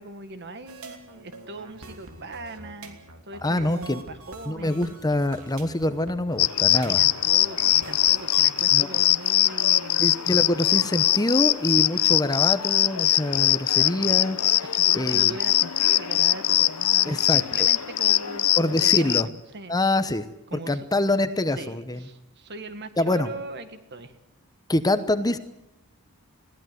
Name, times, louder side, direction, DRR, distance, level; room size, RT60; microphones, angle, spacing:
voice 1, 0.0-5.0 6.7-10.1 14.7-19.7 20.5-20.9 21.6-24.1, right 2 dB, 50° right, 9 dB, 1.8 m, -40 dB
sound 1, 0.7-8.7, right 2 dB, 70° right, 3.0 m, -45 dB
voice 2, 3.4-4.0 4.5-7.0 8.7-9.0 10.0-14.4 14.9-15.3 17.0-17.7 18.6-19.3 19.7-20.3 20.7-22.1 23.0-23.3 24.7-25.4, left 1 dB, 15° left, 11 dB, 0.9 m, -25 dB
sound 2, 6.4-19.2, left 14 dB, 80° left, 0.7 m, -22 dB
21.5 x 16.0 x 9.4 m, 0.85 s
head